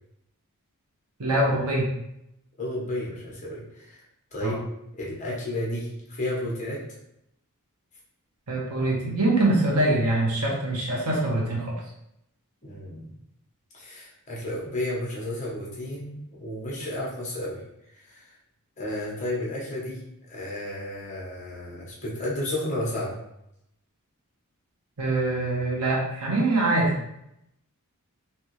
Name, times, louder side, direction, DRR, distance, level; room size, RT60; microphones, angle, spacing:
voice 1, 1.2-1.9 4.4-4.6 8.5-11.7 25.0-26.9, right 2 dB, 90° right, -2 dB, 1.1 m, -24 dB
voice 2, 2.6-4.0 4.3-4.6 5.0-6.8 12.6-13.1 13.7-17.6 18.0-18.3 18.8-20.0 20.3-23.1, left 1 dB, 35° left, -5 dB, 1.1 m, -32 dB
3.4 x 2.9 x 3.1 m, 0.80 s
head